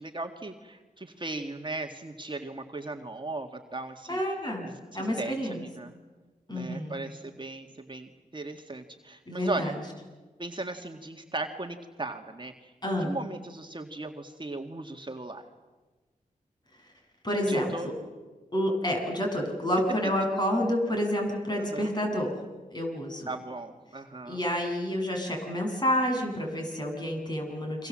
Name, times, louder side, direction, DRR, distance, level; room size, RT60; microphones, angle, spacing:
voice 1, 0.0-4.2 4.6-5.9 6.5-9.7 10.4-15.5 17.5-17.9 21.6-21.9 23.3-24.4, right 2 dB, 30° right, 4 dB, 2.0 m, -37 dB
voice 2, 4.1-4.7 4.9-5.6 6.5-7.0 9.3-9.7 12.8-13.1 17.2-17.9 18.5-22.3 22.7-23.3 24.3-27.9, equal, 30° left, 2 dB, 7.6 m, -29 dB
29.5 x 24.0 x 7.6 m, 1.3 s
cardioid pair, 60°, 15 cm